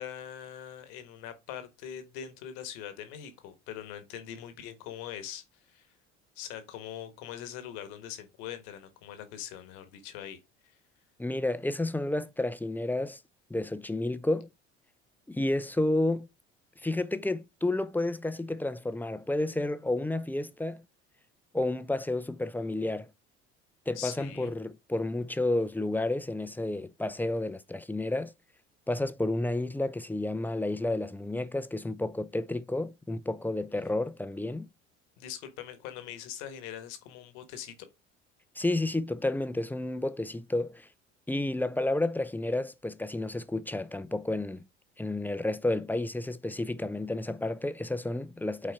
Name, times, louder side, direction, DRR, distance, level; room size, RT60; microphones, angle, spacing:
voice 1, 0.0-5.9 6.3-10.4 10.6-10.8 23.9-24.5 35.2-37.7, left 10 dB, 70° left, 1.5 m, -42 dB
voice 2, 11.2-13.2 13.5-14.5 15.3-16.3 16.8-20.8 21.5-23.1 23.9-28.3 28.9-34.7 38.6-40.9 41.3-44.7 45.0-48.7, left 2 dB, 5° left, 0.5 m, -31 dB
8.7 x 4.2 x 3.6 m
hypercardioid pair, 60°, 35 cm